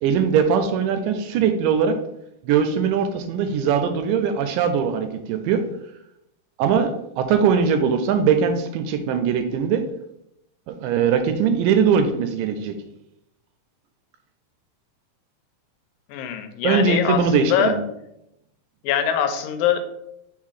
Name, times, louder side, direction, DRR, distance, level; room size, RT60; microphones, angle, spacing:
voice 1, 0.0-2.0 2.5-5.6 6.6-9.9 10.7-12.8 16.6-17.8, right 6 dB, 80° right, 8 dB, 2.1 m, -21 dB
voice 2, 16.1-17.8 18.8-19.8, left 9 dB, 80° left, 8 dB, 2.3 m, -23 dB
5.6 x 4.1 x 4.8 m, 0.80 s
omnidirectional pair, 4.1 m